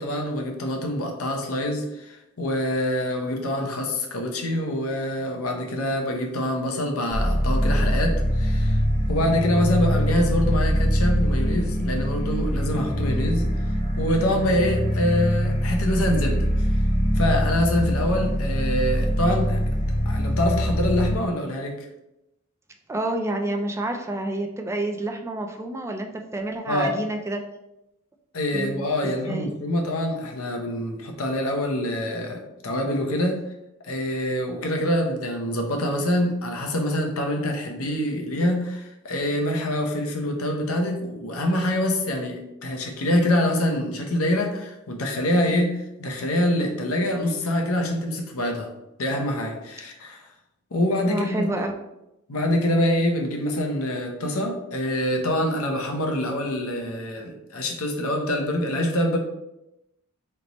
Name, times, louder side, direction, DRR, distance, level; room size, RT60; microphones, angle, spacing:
voice 1, 0.0-8.8 9.1-13.5 14.0-16.7 17.1-19.6 20.1-21.8 26.7-27.0 28.3-33.4 33.8-48.7 49.0-50.2 50.7-51.6 52.3-59.2, left 1 dB, 80° left, 2 dB, 0.8 m, -25 dB
sound 1, 7.1-21.2, equal, 35° left, 0.7 m, -23 dB
voice 2, 22.9-27.5 28.5-29.5 51.1-51.7, right 1 dB, 15° right, 4 dB, 0.3 m, -29 dB
3.3 x 3.0 x 3.9 m, 0.90 s
head